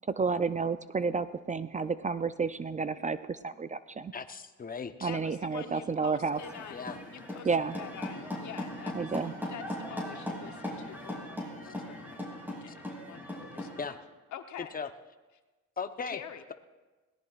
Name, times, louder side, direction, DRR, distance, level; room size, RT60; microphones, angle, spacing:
voice 1, 0.1-4.1 5.0-6.4 7.4-7.8 8.9-9.3, right 5 dB, 25° right, 13 dB, 0.4 m, -31 dB
voice 2, 4.1-5.1 6.7-7.0 11.6-11.7 13.8-14.0 14.7-14.9 15.8-16.2, left 5 dB, 30° left, 8 dB, 0.9 m, -37 dB
voice 3, 5.0-9.1 9.5-13.8 14.3-14.7 16.1-16.4, left 9 dB, 70° left, 7 dB, 1.0 m, -46 dB
sound 1, 6.3-13.9, left 1 dB, 5° right, 5.5 m, -39 dB
21.0 x 18.0 x 2.5 m, 1.3 s
cardioid pair, 90°, 30 cm